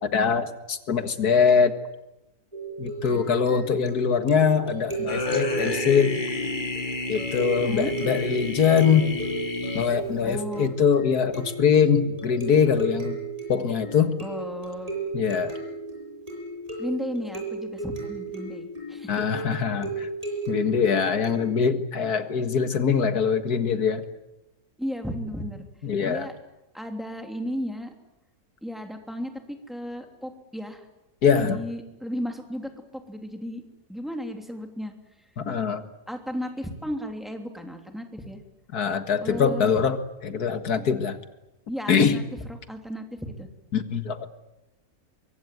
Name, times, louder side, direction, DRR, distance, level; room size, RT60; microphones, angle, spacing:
voice 1, 0.0-1.7 2.8-6.2 7.1-9.2 9.7-13.2 13.5-14.2 15.1-15.5 19.1-20.1 20.5-24.0 25.8-26.3 31.2-31.6 35.4-35.8 38.7-41.2 41.9-42.2 43.7-44.3, left 6 dB, 75° left, 10 dB, 2.2 m, -23 dB
sound 1, 2.5-21.7, right 2 dB, 20° right, 8.3 m, -34 dB
sound 2, 5.1-10.3, left 3 dB, 30° left, 1.8 m, -31 dB
voice 2, 7.6-7.9 10.2-10.7 14.2-14.9 16.8-19.1 24.8-25.7 26.1-26.3 26.7-27.9 28.6-30.8 31.3-33.6 33.9-34.9 36.1-38.4 39.2-39.7 41.7-42.2 42.7-43.5, equal, ahead, 4 dB, 3.2 m, -34 dB
24.0 x 23.5 x 9.4 m, 0.95 s
omnidirectional pair, 1.7 m